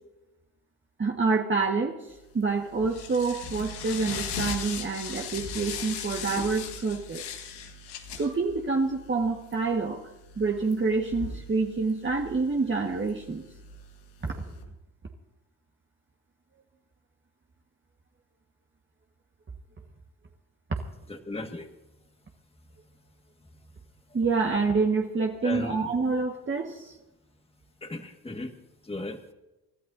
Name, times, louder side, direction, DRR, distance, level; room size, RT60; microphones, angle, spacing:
voice 1, 1.0-7.2 8.2-10.0 10.4-13.4 14.2-14.6 24.1-27.0, right 4 dB, 30° right, 1 dB, 1.6 m, -27 dB
sound 1, 2.2-14.6, left 5 dB, 80° left, 1.8 m, -39 dB
voice 2, 21.1-21.7 25.4-25.9 27.8-28.5 28.8-29.2, left 2 dB, 15° left, 5 dB, 1.7 m, -36 dB
29.0 x 13.0 x 2.7 m, 0.99 s
supercardioid pair, 65°, 39 cm